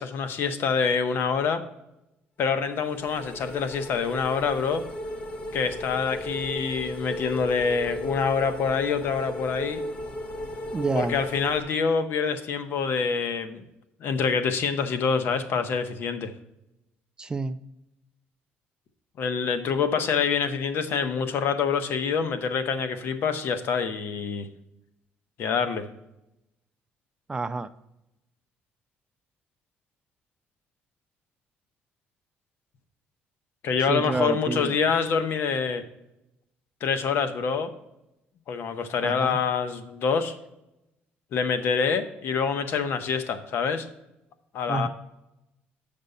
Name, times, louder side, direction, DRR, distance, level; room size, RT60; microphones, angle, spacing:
voice 1, 0.0-1.6 2.4-4.8 5.5-9.8 10.9-13.6 14.0-16.3 19.2-24.5 25.4-25.9 33.6-35.8 36.8-37.7 38.5-40.3 41.3-43.9 44.5-44.9, left 6 dB, 65° left, 9 dB, 0.9 m, -26 dB
sound 1, 2.6-11.6, equal, 30° left, 1.0 m, -36 dB
voice 2, 10.3-11.2 17.2-17.6 27.3-27.7 33.9-34.8 39.0-39.4 44.7-44.9, right 3 dB, 20° right, 12 dB, 0.4 m, -29 dB
8.0 x 5.3 x 5.3 m, 0.89 s
cardioid pair, 125°, 4 cm